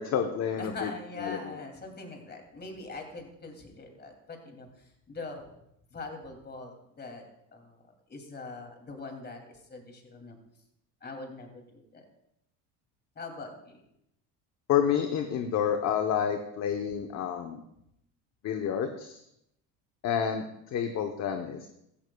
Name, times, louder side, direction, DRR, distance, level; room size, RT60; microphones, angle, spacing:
voice 1, 0.0-0.9 1.2-1.6 14.7-17.6 18.4-19.2 20.0-20.4 20.7-21.7, left 8 dB, 45° left, 5 dB, 1.0 m, -29 dB
voice 2, 0.6-5.4 5.9-7.2 7.5-7.8 8.1-10.4 11.0-12.1 13.2-13.8, left 3 dB, 25° left, 3 dB, 2.7 m, -42 dB
16.0 x 14.0 x 2.3 m, 0.79 s
cardioid pair, 115°, 37 cm